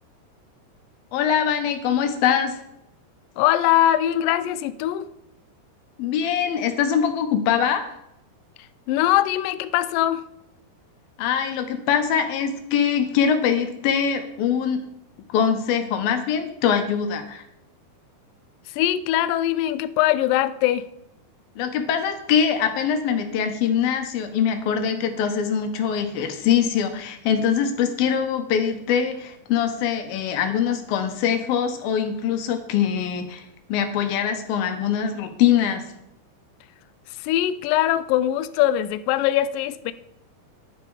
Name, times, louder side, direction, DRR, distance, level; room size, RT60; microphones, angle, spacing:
voice 1, 1.1-2.6 6.0-7.8 11.2-14.9 15.3-17.4 21.6-33.4 33.7-35.8, left 8 dB, 70° left, 7 dB, 2.9 m, -23 dB
voice 2, 3.4-5.1 8.9-10.2 18.7-20.8 37.2-39.9, left 13 dB, 90° left, 12 dB, 1.9 m, -21 dB
11.0 x 10.5 x 4.9 m, 0.80 s
omnidirectional pair, 4.6 m